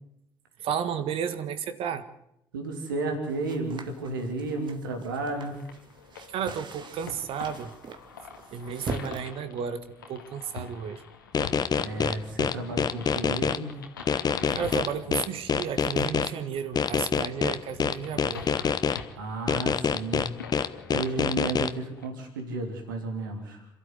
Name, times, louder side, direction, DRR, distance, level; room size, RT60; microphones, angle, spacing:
voice 1, 0.6-2.1 6.3-7.7 8.5-11.0 14.5-18.5, right 8 dB, 60° right, 12 dB, 1.7 m, -33 dB
voice 2, 2.5-5.6 11.8-13.7 19.1-20.3 20.6-23.7, right 2 dB, 85° right, 4 dB, 3.2 m, -33 dB
sound 1, 3.3-9.2, right 4 dB, 45° right, 2.0 m, -42 dB
sound 2, 5.3-22.1, left 5 dB, 90° left, 1.9 m, -45 dB
sound 3, 11.3-13.6 14.1-16.3 16.8-19.0 19.5-21.7, left 6 dB, 40° left, 1.1 m, -25 dB
27.5 x 13.0 x 8.3 m, 0.80 s
hypercardioid pair, 50°, 11 cm